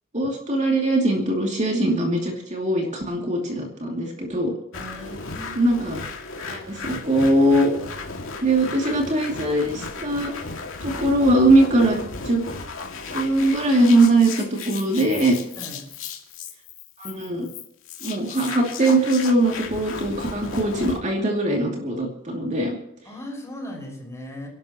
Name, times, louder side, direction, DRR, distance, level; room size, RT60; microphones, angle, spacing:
voice 1, 0.1-4.5 5.6-6.0 6.4-7.7 8.4-10.3 10.8-12.0 12.3-12.4 13.1-15.4 17.0-17.5 18.0-22.8, right 1 dB, 35° right, 0 dB, 2.7 m, -21 dB
sound 1, 4.7-21.0, left 4 dB, 75° left, 2.3 m, -35 dB
voice 2, 4.7-5.8 15.6-15.8 23.1-24.5, left 1 dB, 15° left, 0 dB, 5.6 m, -37 dB
29.0 x 12.0 x 3.0 m, 0.79 s
head